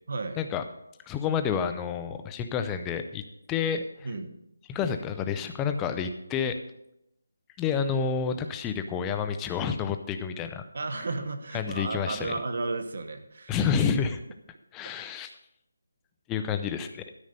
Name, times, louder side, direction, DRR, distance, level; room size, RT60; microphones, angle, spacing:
voice 1, 0.1-0.4 4.0-4.4 10.7-13.6, right 3 dB, 40° right, 8 dB, 1.0 m, -33 dB
voice 2, 1.1-3.2 3.5-3.9 4.7-6.6 7.6-10.6 11.5-12.3 13.5-14.2 14.7-15.3 16.3-17.1, left 7 dB, 5° left, 8 dB, 0.3 m, -29 dB
12.5 x 5.3 x 6.6 m, 0.83 s
figure-of-eight pair, 180°, 0 cm